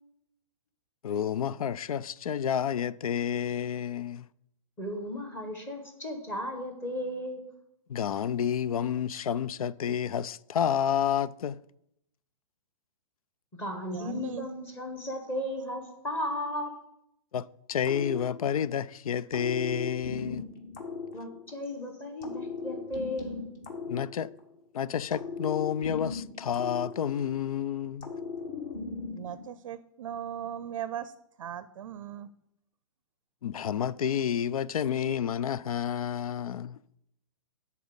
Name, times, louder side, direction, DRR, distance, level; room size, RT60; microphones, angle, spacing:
voice 1, 1.0-4.2 7.9-11.6 17.3-20.4 23.9-24.3 24.7-28.1 33.4-36.8, left 9 dB, 85° left, 0.4 m, -30 dB
voice 2, 4.8-7.5 13.6-16.7 21.1-23.4, left 1 dB, 10° left, 1.2 m, -35 dB
voice 3, 13.9-14.5 29.1-31.1 31.4-32.3, right 10 dB, 65° right, 0.5 m, -38 dB
sound 1, 17.8-18.8 19.3-21.7 22.2-24.6 25.1-27.5 28.0-29.5, left 4 dB, 35° left, 1.6 m, -38 dB
10.0 x 4.2 x 7.0 m
hypercardioid pair, 165°, 18 cm